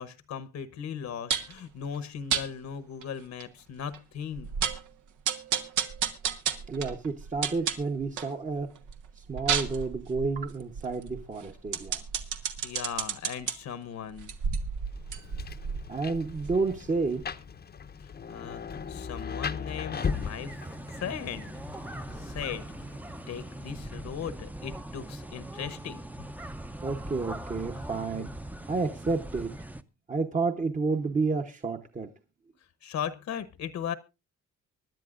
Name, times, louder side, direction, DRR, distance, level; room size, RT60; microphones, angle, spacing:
voice 1, 0.0-4.5 12.6-14.3 18.0-20.6 20.9-21.6 22.1-22.7 23.3-26.0 27.7-27.8 28.2-28.3 32.8-33.9, left 8 dB, 65° left, 13 dB, 1.0 m, -38 dB
sound 1, 1.3-1.6 2.3-2.5 3.0-3.1 3.4-3.5 3.9-4.0 4.4-4.9 5.3-8.4 8.8-13.5 14.2-16.9 17.2-17.3, right 7 dB, 85° right, 1.2 m, -32 dB
voice 2, 6.7-8.7 9.2-12.0 15.9-17.2 26.8-28.3 28.7-29.5 30.1-32.1, right 4 dB, 25° right, 5 dB, 0.9 m, -30 dB
Rain, 14.8-23.9, left 6 dB, 35° left, 0.7 m, -38 dB
sound 2, 19.9-29.8, right 1 dB, 5° right, 0.6 m, -40 dB
24.5 x 10.5 x 2.5 m, 0.26 s
cardioid pair, 90°, 30 cm